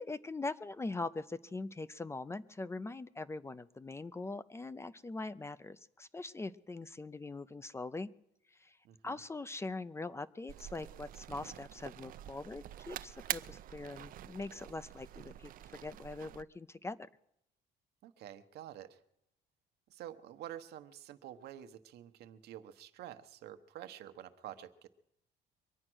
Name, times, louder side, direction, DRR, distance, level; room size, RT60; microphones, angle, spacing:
voice 1, 0.0-8.1 8.5-8.8 9.0-17.1, left 3 dB, 15° left, 15 dB, 0.5 m, -42 dB
voice 2, 8.8-9.2 18.0-19.0 19.9-24.9, right 11 dB, 75° right, 9 dB, 1.0 m, -49 dB
sound 1, 10.5-16.4, right 12 dB, 55° right, 0.5 m, -46 dB
23.5 x 8.8 x 6.2 m, 0.81 s
cardioid pair, 110°, 17 cm